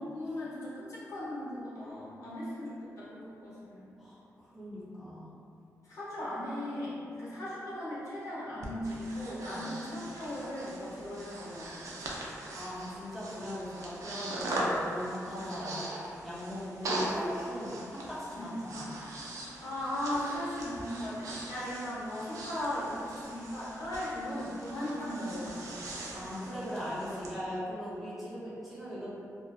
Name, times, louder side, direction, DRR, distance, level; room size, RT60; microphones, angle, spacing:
voice 1, 0.0-3.9 5.8-12.2 15.3-15.4 18.3-18.5 19.6-25.7, left 1 dB, 70° left, -9 dB, 0.7 m, -37 dB
voice 2, 4.5-5.3 9.5-9.7 12.5-18.9 20.2-20.3 26.1-29.1, equal, ahead, -10 dB, 0.5 m, -39 dB
Breathing, 8.6-27.3, right 1 dB, 75° right, 0.3 m, -40 dB
2.5 x 2.2 x 2.3 m, 2.5 s
wide cardioid pair, 155°, 6 cm